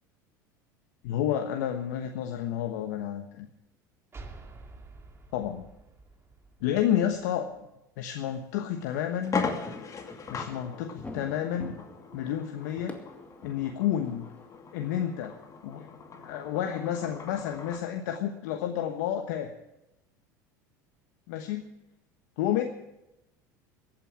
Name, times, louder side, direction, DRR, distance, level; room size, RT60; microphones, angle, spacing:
voice 1, 1.0-3.5 5.3-5.6 6.6-7.5 8.0-9.4 10.3-11.8 12.1-12.9 13.4-14.3 14.7-15.3 15.6-16.0 16.2-19.5 21.3-21.6 22.4-22.6, left 10 dB, 70° left, 5 dB, 1.2 m, -30 dB
sound 1, 4.1-7.6, right 3 dB, 25° right, 2.4 m, -49 dB
sound 2, 8.3-8.4 8.8-8.9 9.2-17.9, left 5 dB, 35° left, 2.4 m, -39 dB
sound 3, 9.5-14.3, left 2 dB, 15° left, 2.1 m, -46 dB
15.0 x 9.1 x 8.8 m, 0.90 s
hypercardioid pair, 80°, 10 cm